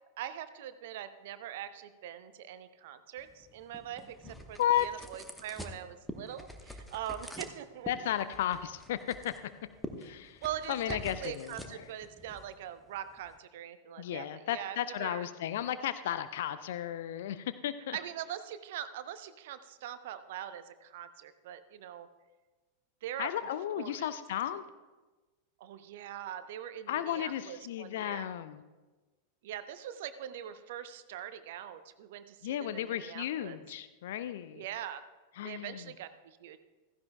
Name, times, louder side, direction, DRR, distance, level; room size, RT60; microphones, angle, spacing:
voice 1, 0.2-7.9 10.4-15.2 17.9-22.1 23.0-23.3 23.8-24.1 25.6-28.3 29.4-33.6 34.5-35.0 35.4-36.6, right 10 dB, 55° right, 12 dB, 0.7 m, -42 dB
sound 1, 3.2-13.4, left 1 dB, 5° left, 1.1 m, -47 dB
voice 2, 7.9-9.3 10.0-10.4 10.7-11.9 14.0-18.0 23.2-24.6 26.9-28.6 32.4-34.6 35.4-35.9, left 11 dB, 55° left, 13 dB, 0.4 m, -34 dB
15.5 x 15.0 x 2.3 m, 1.2 s
figure-of-eight pair, 90°, 0 cm